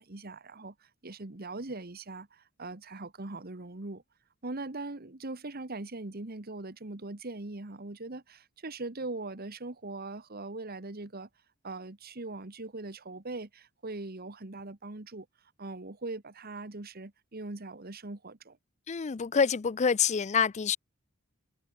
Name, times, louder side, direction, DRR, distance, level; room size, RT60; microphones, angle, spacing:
voice 1, 0.0-4.0 4.4-11.3 11.6-15.3 15.6-18.6, right 2 dB, 45° right, 1.5 m, -41 dB
voice 2, 18.9-20.8, left 6 dB, 35° left, 0.4 m, -26 dB
head